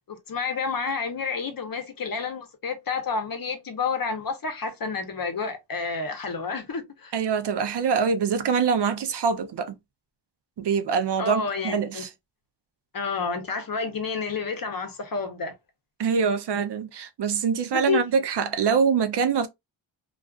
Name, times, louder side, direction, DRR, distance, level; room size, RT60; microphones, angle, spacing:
voice 1, 0.1-7.1 11.2-12.0 12.9-15.5 17.7-18.0, left 5 dB, 45° left, 0.7 m, -30 dB
voice 2, 7.1-9.8 10.6-12.1 16.0-19.5, right 6 dB, 55° right, 0.5 m, -24 dB
2.4 x 2.3 x 2.3 m
cardioid pair, 55°, 49 cm